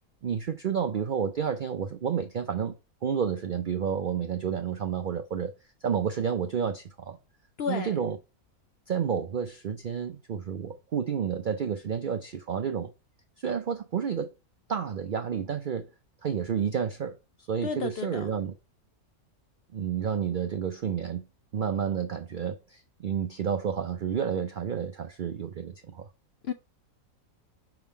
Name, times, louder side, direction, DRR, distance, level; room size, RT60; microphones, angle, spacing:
voice 1, 0.2-2.7 3.0-5.5 5.8-7.2 7.7-8.2 8.9-12.9 13.4-14.3 14.7-15.9 16.2-18.5 19.7-21.3 21.5-26.1, right 7 dB, 90° right, 0.4 m, -30 dB
voice 2, 7.6-8.0 17.6-18.3 26.4-26.5, left 6 dB, 70° left, 0.6 m, -32 dB
5.8 x 3.7 x 4.4 m
omnidirectional pair, 1.6 m